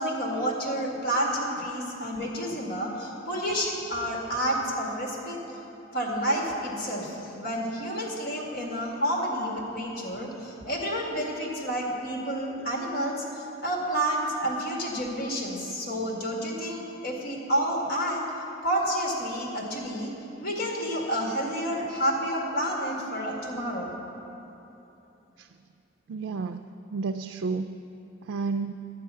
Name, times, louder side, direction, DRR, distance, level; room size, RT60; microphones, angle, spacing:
voice 1, 0.0-5.4 5.9-18.2 18.6-20.1 20.4-24.0, equal, 55° left, -2 dB, 2.0 m, -29 dB
voice 2, 26.1-26.7 26.9-27.7 28.2-28.7, right 4 dB, 85° right, 8 dB, 0.3 m, -31 dB
11.5 x 9.3 x 5.6 m, 3.0 s
head